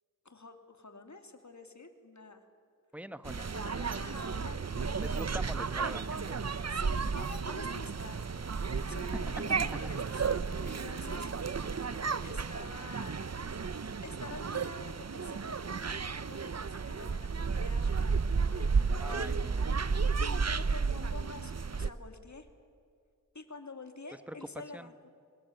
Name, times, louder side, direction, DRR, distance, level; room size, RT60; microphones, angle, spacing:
voice 1, 0.2-2.5 3.3-5.4 6.7-8.2 8.8-11.3 12.2-13.2 14.0-19.2 20.2-22.5 23.3-25.1, left 3 dB, 60° left, 7 dB, 2.7 m, -48 dB
voice 2, 2.9-3.5 5.0-6.4 8.9-9.1 19.0-19.8 24.3-24.4 24.7-24.9, equal, 5° right, 13 dB, 1.2 m, -44 dB
sound 1, 3.2-21.9, right 5 dB, 55° right, 0.8 m, -33 dB
25.0 x 21.0 x 9.2 m, 2.3 s
wide cardioid pair, 45°, 32 cm